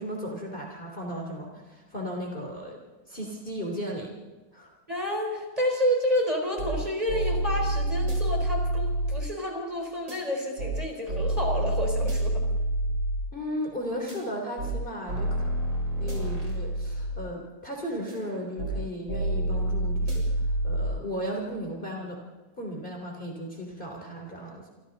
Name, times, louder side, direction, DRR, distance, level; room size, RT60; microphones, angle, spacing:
voice 1, 0.0-2.8 3.1-4.2 4.5-4.7 13.3-15.5 16.0-20.3 20.6-22.2 22.6-24.7, equal, 25° left, 0 dB, 3.5 m, -35 dB
voice 2, 4.9-12.4, equal, 20° right, 1 dB, 4.4 m, -29 dB
sound 1, 6.1-6.2 6.6-6.8 7.1-9.2 10.1-10.2 10.6-10.8 11.1-13.2 14.1-14.2 14.6-14.8 15.1-17.2 18.1-18.8 19.1-20.9, right 1 dB, 70° right, 7.5 m, -28 dB
27.5 x 26.0 x 4.0 m, 1.3 s
omnidirectional pair, 2.1 m